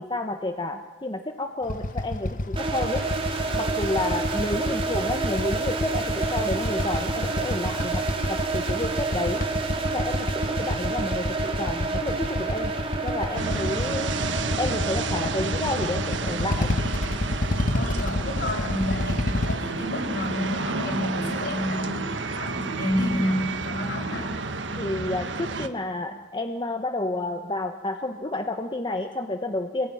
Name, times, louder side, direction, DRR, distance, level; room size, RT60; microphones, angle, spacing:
voice 1, 0.0-3.0 3.5-8.0 8.3-9.4 9.8-12.7 13.0-14.1 14.6-16.8 24.8-29.9, left 2 dB, 25° left, 5 dB, 1.2 m, -30 dB
Motorcycle / Idling, 1.6-19.5, left 1 dB, 50° left, 1.3 m, -29 dB
sound 1, 2.6-19.4, right 3 dB, 30° right, 3.0 m, -30 dB
sound 2, 13.3-25.7, right 3 dB, 85° right, 1.6 m, -31 dB
voice 2, 17.5-24.3, equal, 65° left, 0 dB, 7.4 m, -29 dB
26.0 x 21.0 x 9.9 m, 1.3 s
head